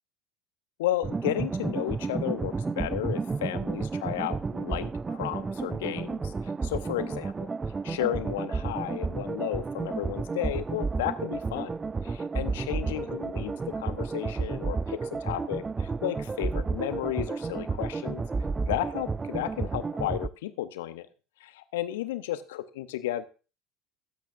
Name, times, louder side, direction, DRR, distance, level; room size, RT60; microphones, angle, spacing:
voice 1, 0.8-7.5 7.8-11.7 12.0-18.2 18.7-21.1 21.4-23.3, left 14 dB, 65° left, 12 dB, 0.9 m, -33 dB
sound 1, 1.0-20.3, right 4 dB, 20° right, 0.4 m, -32 dB
21.0 x 8.4 x 2.5 m, 0.34 s
figure-of-eight pair, 65°, 0 cm